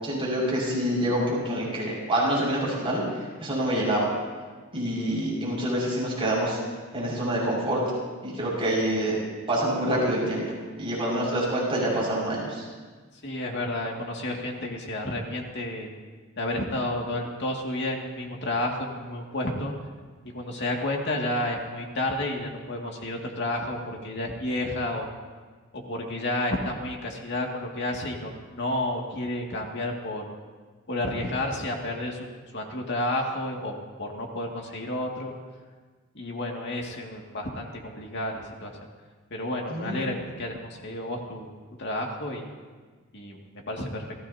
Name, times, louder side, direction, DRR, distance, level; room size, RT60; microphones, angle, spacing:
voice 1, 0.0-3.0 3.4-4.1 4.7-6.6 6.9-7.8 8.2-9.2 9.5-10.4 10.8-12.7 39.7-40.0, right 1 dB, 25° right, -5 dB, 5.9 m, -26 dB
voice 2, 13.2-15.9 16.4-19.7 20.3-25.1 25.7-30.3 30.9-32.2 32.5-33.7 34.0-35.3 36.1-38.7 39.3-41.5 41.8-42.5 43.1-43.4 43.7-44.1, left 1 dB, 55° left, 0 dB, 2.3 m, -31 dB
28.5 x 16.0 x 2.8 m, 1.4 s
head